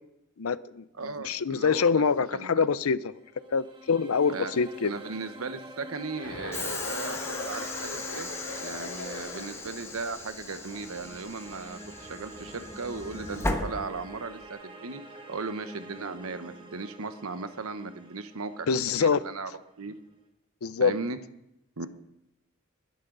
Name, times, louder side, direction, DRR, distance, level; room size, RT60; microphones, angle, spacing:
voice 1, 0.4-3.1 3.5-4.9 18.7-19.2 20.6-20.9, left 5 dB, 90° left, 0.6 m, -25 dB
voice 2, 1.0-2.0 2.3-2.7 4.3-4.5 4.8-8.3 8.6-15.0 15.3-18.7 19.0-19.5 19.8-20.0 20.8-21.2 21.8-21.9, right 4 dB, 90° right, 1.0 m, -37 dB
sound 1, 3.0-20.1, right 1 dB, 25° right, 1.6 m, -47 dB
Chuckle chortle, 6.2-9.9, left 3 dB, 70° left, 2.7 m, -38 dB
Train / Sliding door, 6.5-14.5, left 2 dB, 15° left, 1.2 m, -37 dB
20.5 x 11.0 x 3.9 m
head